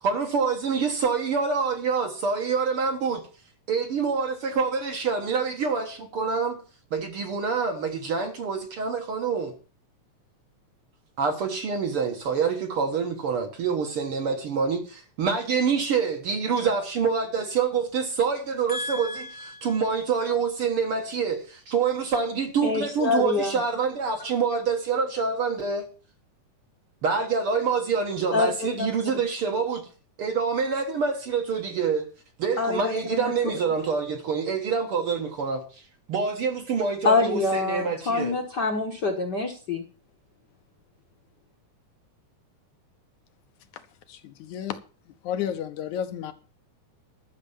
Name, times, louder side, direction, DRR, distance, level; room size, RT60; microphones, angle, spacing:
voice 1, 0.0-3.2 3.7-6.6 6.9-9.5 11.2-25.8 27.0-29.9 30.2-32.1 32.4-35.8 36.1-38.3, right 5 dB, 55° right, 1.9 m, -26 dB
voice 2, 18.7-19.7 22.6-23.5 28.3-28.5 28.8-28.9 32.6-33.3 37.0-39.8, left 3 dB, 45° left, 1.4 m, -26 dB
voice 3, 43.7-44.8 45.1-46.3, left 9 dB, 75° left, 2.3 m, -32 dB
12.5 x 6.5 x 7.1 m
omnidirectional pair, 3.6 m